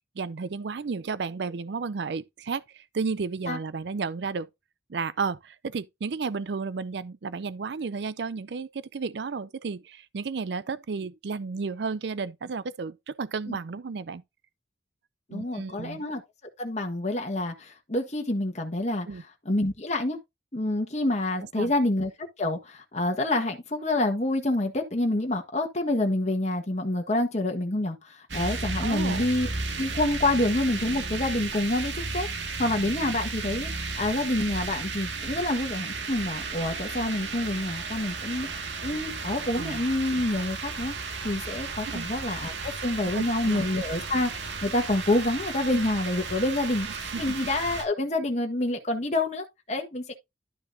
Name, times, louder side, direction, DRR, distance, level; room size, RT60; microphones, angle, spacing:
voice 1, 0.2-4.5 4.9-14.2 15.3-16.0 19.1-19.2 21.6-21.7 28.8-29.3 39.5-39.8 41.9-42.1 43.0-43.6 47.1-47.3, right 4 dB, 65° right, 0.5 m, -33 dB
voice 2, 15.3-16.2 16.6-19.1 19.4-20.2 20.5-22.1 22.4-29.5 29.8-40.9 41.2-50.1, left 1 dB, 40° left, 1.5 m, -27 dB
sound 1, 28.3-47.8, right 4 dB, 85° right, 2.0 m, -34 dB
12.0 x 5.9 x 2.7 m
head